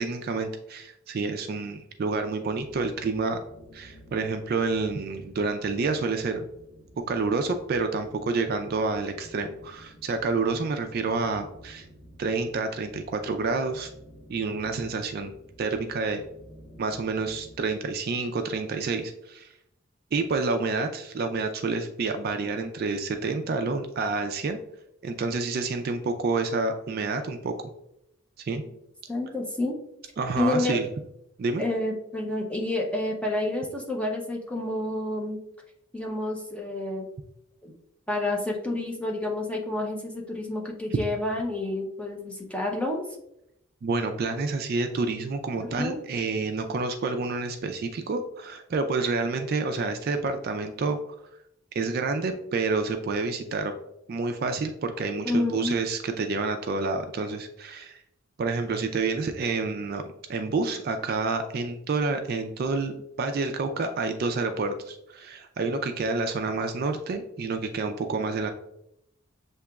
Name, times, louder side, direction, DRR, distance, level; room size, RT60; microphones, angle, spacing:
voice 1, 0.0-3.4 3.7-6.4 7.1-11.9 12.2-13.9 14.3-15.3 15.6-16.2 16.8-19.5 20.1-24.6 25.0-27.5 28.5-28.6 30.2-30.9 31.4-31.6 43.8-51.2 51.7-53.7 54.1-58.0 58.4-60.0 60.3-68.5, right 3 dB, 45° right, 6 dB, 0.3 m, -28 dB
sound 1, 2.6-17.6, equal, 55° left, 1.2 m, -51 dB
voice 2, 29.1-29.8 30.3-30.8 31.6-35.4 35.9-37.1 37.6-37.7 38.1-43.0 45.6-46.0 55.2-55.7, left 2 dB, 5° left, -1 dB, 0.6 m, -29 dB
7.1 x 2.9 x 2.3 m, 0.81 s
head